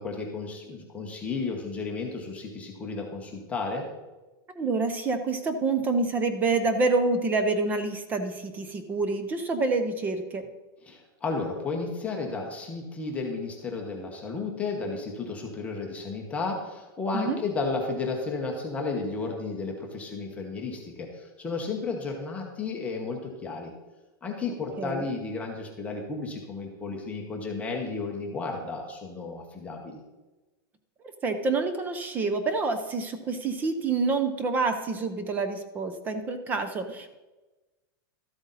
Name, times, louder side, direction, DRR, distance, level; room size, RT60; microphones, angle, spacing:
voice 1, 0.0-3.9 10.8-23.7 24.2-30.0, left 3 dB, 10° left, 1 dB, 1.0 m, -33 dB
voice 2, 4.6-10.4 17.1-17.4 24.8-25.0 31.2-37.2, right 3 dB, 15° right, 9 dB, 0.6 m, -27 dB
13.0 x 8.0 x 4.0 m, 1.1 s
supercardioid pair, 170°, 12 cm